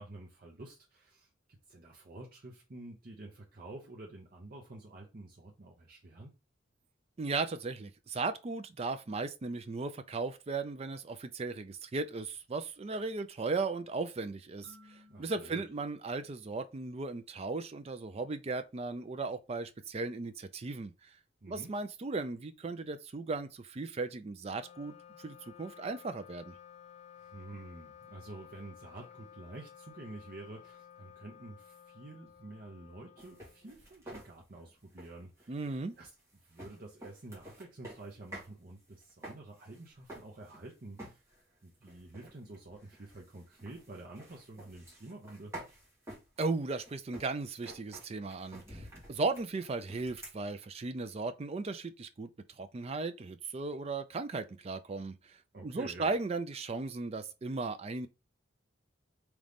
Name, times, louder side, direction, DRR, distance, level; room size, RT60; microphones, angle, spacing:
voice 1, 0.0-6.3 15.1-15.7 21.4-21.7 27.2-35.6 36.0-36.1 36.5-41.2 41.6-45.5 55.5-56.1, right 2 dB, 50° right, 0.8 m, -49 dB
voice 2, 7.2-20.9 21.5-26.6 35.5-35.9 46.4-52.3 52.6-58.1, right 3 dB, 30° right, 0.4 m, -36 dB
sound 1, 14.6-17.3, left 1 dB, 70° right, 1.8 m, -62 dB
Wind instrument woodwind instrument, 24.4-34.1, left 9 dB, 35° left, 0.4 m, -55 dB
sound 2, 33.2-38.5 38.8-40.7 41.0-41.4 41.8-50.4, right 1 dB, 15° right, 1.6 m, -50 dB
3.8 x 3.1 x 3.4 m
head